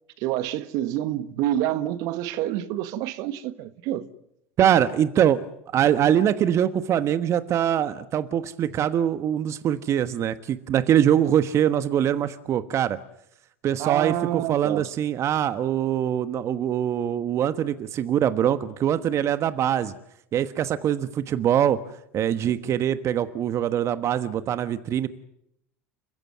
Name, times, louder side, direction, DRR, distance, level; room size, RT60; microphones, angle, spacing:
voice 1, 0.2-4.1 13.8-14.9, right 13 dB, 60° right, 1.5 m, -27 dB
voice 2, 4.6-13.0 13.6-19.9 20.3-21.8 22.1-25.1, right 10 dB, 45° right, 1.3 m, -23 dB
30.0 x 15.0 x 9.5 m
hypercardioid pair, 70°, 7 cm